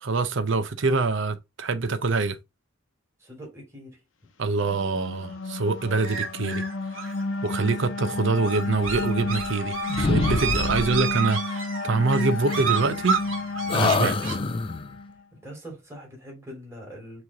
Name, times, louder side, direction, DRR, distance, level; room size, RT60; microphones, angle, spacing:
voice 1, 0.0-2.4 4.4-6.6 7.4-13.2 13.7-14.4, right 3 dB, 70° right, 0.7 m, -25 dB
voice 2, 3.2-4.0 10.9-11.0 15.4-17.2, equal, 15° right, 2.8 m, -42 dB
sound 1, 4.6-15.1, left 3 dB, 80° left, 0.9 m, -32 dB
sound 2, 6.0-14.3, right 6 dB, 85° right, 1.6 m, -31 dB
sound 3, 8.8-9.7 10.0-11.1 12.5-13.3 13.7-14.9, left 4 dB, 25° left, 0.4 m, -27 dB
5.9 x 3.2 x 2.8 m
head